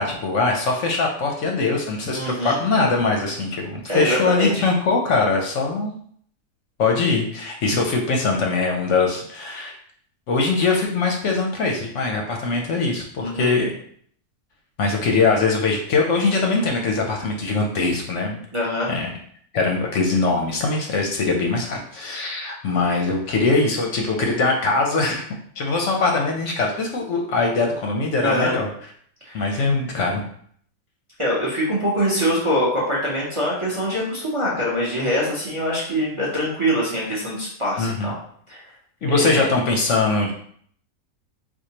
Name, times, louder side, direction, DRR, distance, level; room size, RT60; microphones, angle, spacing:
voice 1, 0.0-5.9 6.8-9.8 10.3-13.8 14.8-18.4 18.9-19.1 19.5-25.3 25.6-28.7 29.3-30.2 37.8-38.1 39.0-40.3, left 3 dB, 65° left, 1 dB, 0.8 m, -22 dB
voice 2, 2.1-2.6 3.9-4.6 13.2-13.5 18.5-18.9 28.2-28.6 29.2-29.6 31.2-38.1 38.5-38.6 39.1-39.5, equal, 30° right, -5 dB, 0.6 m, -24 dB
4.4 x 2.3 x 2.8 m, 0.62 s
omnidirectional pair, 1.5 m